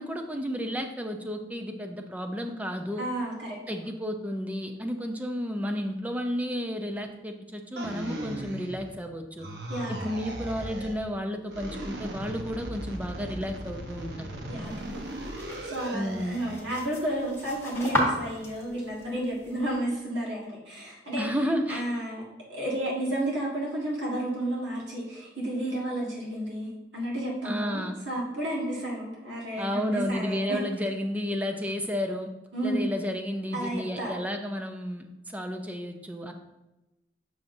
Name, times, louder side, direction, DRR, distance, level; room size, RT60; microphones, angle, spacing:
voice 1, 0.0-3.1 3.7-9.5 9.9-14.4 15.9-16.4 21.2-21.8 27.4-28.0 29.6-32.3 32.6-36.3, equal, 10° right, 5 dB, 0.5 m, -32 dB
voice 2, 3.0-3.6 9.7-10.1 14.5-15.0 15.6-21.2 21.7-22.2 22.5-30.6 32.5-33.0 33.5-34.1, right 1 dB, 80° right, -5 dB, 1.7 m, -32 dB
sound 1, 7.8-9.1 9.4-11.0 11.5-16.7, right 1 dB, 65° right, 0.8 m, -38 dB
sound 2, 14.7-19.8, equal, 15° left, 1.2 m, -35 dB
7.2 x 6.2 x 2.6 m, 1.0 s
head